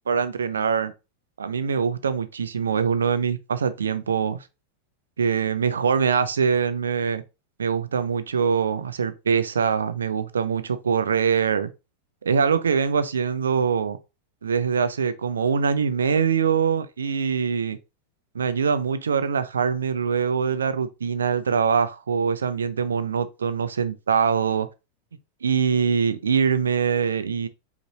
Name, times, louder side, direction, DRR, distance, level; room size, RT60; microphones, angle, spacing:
voice 1, 0.1-0.9 1.4-4.4 5.2-7.2 7.6-11.7 12.2-14.0 14.4-17.8 18.3-24.7 25.4-27.5, right 6 dB, 70° right, 0.5 m, -23 dB
5.1 x 3.0 x 2.9 m
figure-of-eight pair, 90°, 0 cm